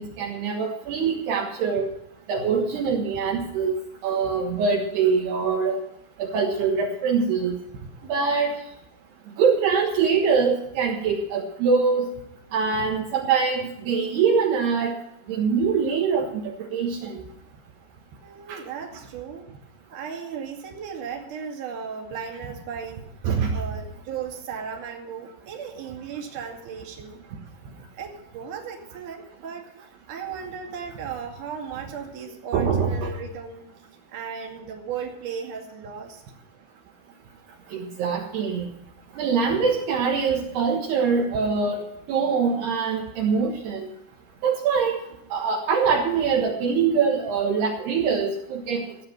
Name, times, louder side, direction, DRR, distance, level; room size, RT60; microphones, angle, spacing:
voice 1, 0.0-1.9 2.3-5.8 6.2-7.6 8.1-8.5 9.4-12.1 12.5-15.0 15.3-17.2 18.5-18.6 23.2-23.6 32.5-33.1 37.7-38.7 39.2-43.9 44.4-45.0 45.3-48.8, right 5 dB, 70° right, 0 dB, 3.4 m, -23 dB
voice 2, 18.2-19.5 19.9-23.1 23.5-27.2 27.9-29.7 30.1-33.7 34.1-36.2, right 7 dB, 50° right, 1 dB, 3.6 m, -36 dB
16.0 x 10.0 x 5.8 m, 0.80 s
omnidirectional pair, 5.0 m